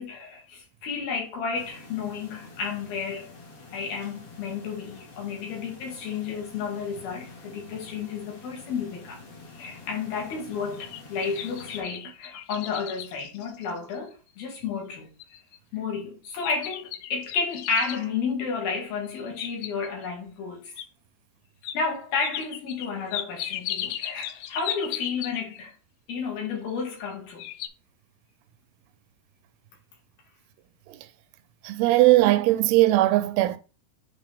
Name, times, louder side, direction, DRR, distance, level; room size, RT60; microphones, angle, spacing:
voice 1, 0.0-3.3 3.7-9.2 9.6-15.1 15.7-20.7 21.7-25.7 26.1-27.5, left 5 dB, 70° left, 3.7 m, -32 dB
sound 1, 1.5-11.8, left 3 dB, 45° left, 2.4 m, -47 dB
sound 2, 10.5-14.1 14.6-14.7 15.2-15.6 16.4-18.1 19.1-20.1 20.8-20.9 21.6-21.8 22.2-25.7 26.7-27.1 27.4-27.7, left 12 dB, 85° left, 2.0 m, -36 dB
voice 2, 31.7-33.6, right 17 dB, 85° right, 2.4 m, -19 dB
8.3 x 3.9 x 3.5 m
omnidirectional pair, 4.6 m